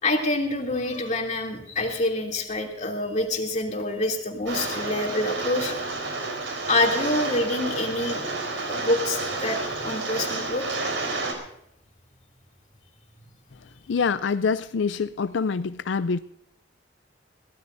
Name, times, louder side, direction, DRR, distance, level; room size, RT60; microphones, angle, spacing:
voice 1, 0.0-5.8 6.7-8.2 8.7-10.7, left 2 dB, 40° left, 2.8 m, -26 dB
Rain, 4.5-11.3, right 3 dB, 80° right, 4.2 m, -30 dB
voice 2, 13.9-16.2, left 5 dB, 70° left, 0.4 m, -25 dB
22.5 x 16.5 x 2.6 m
head